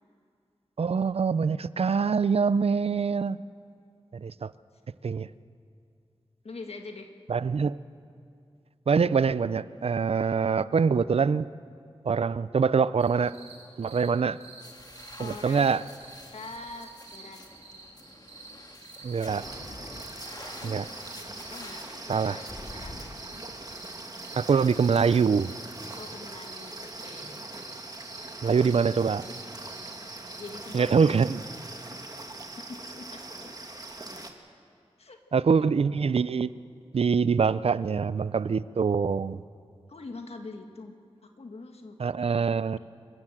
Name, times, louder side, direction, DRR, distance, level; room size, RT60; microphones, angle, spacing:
voice 1, 0.8-3.4 4.1-4.5 5.0-5.3 7.3-7.8 8.9-11.5 12.0-13.3 13.8-14.4 15.2-15.8 19.0-19.4 20.6-20.8 22.1-22.4 24.3-25.5 28.4-29.2 30.7-31.4 35.3-36.5 36.9-39.4 42.0-42.8, right 5 dB, 65° right, 17 dB, 0.5 m, -24 dB
voice 2, 6.4-7.1 15.2-15.7 16.3-17.4 20.6-20.9 21.5-22.4 22.7-23.0 26.0-27.4 28.5-28.7 30.4-31.2 32.7-33.5 35.0-35.7 39.9-41.0 41.4-42.4, left 3 dB, 65° left, 5 dB, 1.7 m, -44 dB
sound 1, 13.0-30.5, right 3 dB, 85° right, 3.9 m, -50 dB
sound 2, 14.6-23.1, left 2 dB, 35° left, 2.1 m, -47 dB
sound 3, 19.3-34.3, right 2 dB, 35° right, 1.6 m, -42 dB
27.0 x 13.5 x 7.8 m, 2.4 s
wide cardioid pair, 95°, 11 cm